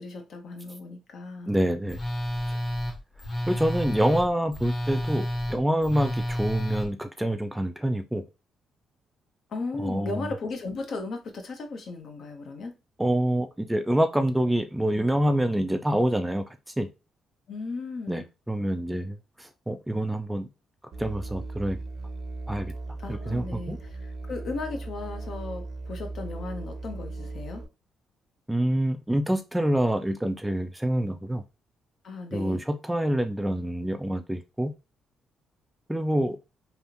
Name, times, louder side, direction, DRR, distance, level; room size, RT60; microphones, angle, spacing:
voice 1, 0.0-1.5 9.5-12.7 17.5-18.3 23.0-27.6 32.0-32.6, left 3 dB, 60° left, 0.8 m, -36 dB
voice 2, 1.5-2.0 3.5-8.2 9.8-10.3 13.0-16.4 16.8-16.9 18.1-20.5 21.0-21.8 22.5-22.7 23.1-23.8 28.5-31.4 32.3-34.7 35.9-36.4, right 1 dB, 10° right, 0.4 m, -26 dB
Telephone, 1.9-6.9, equal, 35° left, 1.1 m, -30 dB
Musical instrument, 20.9-27.7, right 2 dB, 60° right, 0.7 m, -37 dB
3.4 x 2.5 x 2.8 m
cardioid pair, 90°, 0 cm